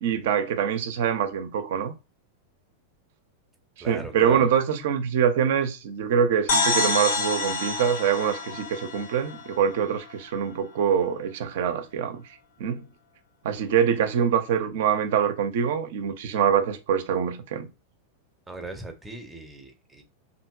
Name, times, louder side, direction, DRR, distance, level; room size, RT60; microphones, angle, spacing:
voice 1, 0.0-1.9 3.8-12.2 12.6-12.8 13.4-17.7, right 8 dB, 55° right, 0.4 m, -24 dB
voice 2, 3.8-4.5 18.5-20.0, right 2 dB, 10° right, 0.6 m, -39 dB
sound 1, 6.5-10.1, left 3 dB, 55° left, 0.5 m, -27 dB
2.8 x 2.5 x 2.2 m
figure-of-eight pair, 90°, 0 cm